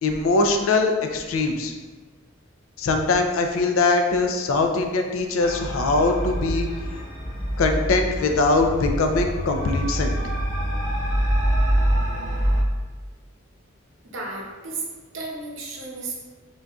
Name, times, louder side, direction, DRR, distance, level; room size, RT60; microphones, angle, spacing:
voice 1, 0.0-1.7 2.8-6.7 7.6-10.2, left 3 dB, 85° left, 4 dB, 0.4 m, -22 dB
sound 1, 5.4-12.6, equal, 40° left, 1.4 m, -25 dB
voice 2, 14.1-14.8 15.1-16.1, right 3 dB, 70° right, -2 dB, 0.8 m, -33 dB
3.9 x 3.6 x 2.3 m, 1.3 s
head